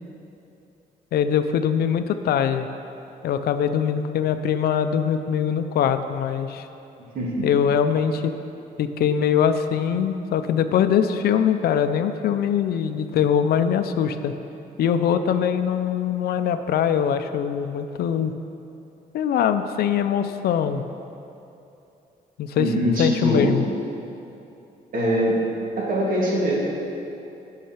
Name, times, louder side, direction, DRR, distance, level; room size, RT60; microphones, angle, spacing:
voice 1, 1.1-2.7 3.2-6.7 7.4-8.3 8.8-14.3 14.8-18.3 19.1-20.8 22.4-22.7 23.0-23.6, left 8 dB, 70° left, 9 dB, 0.5 m, -22 dB
voice 2, 7.1-7.5 22.6-23.5 24.9-25.4 25.8-26.5, equal, 55° right, -5 dB, 2.2 m, -22 dB
8.4 x 5.7 x 5.8 m, 2.8 s
cardioid pair, 130°, 16 cm